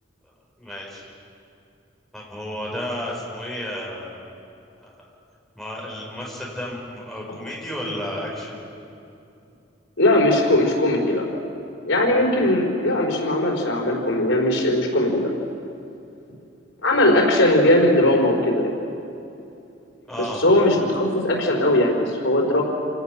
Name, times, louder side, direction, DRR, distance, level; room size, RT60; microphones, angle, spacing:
voice 1, 0.6-1.1 2.1-4.2 4.8-4.9 5.5-8.6 20.1-20.4, equal, ahead, -4 dB, 5.9 m, -32 dB
voice 2, 10.0-11.2 11.8-15.3 16.8-18.8 20.2-22.6, left 1 dB, 85° left, -1 dB, 4.9 m, -19 dB
28.0 x 18.0 x 6.9 m, 2.7 s
head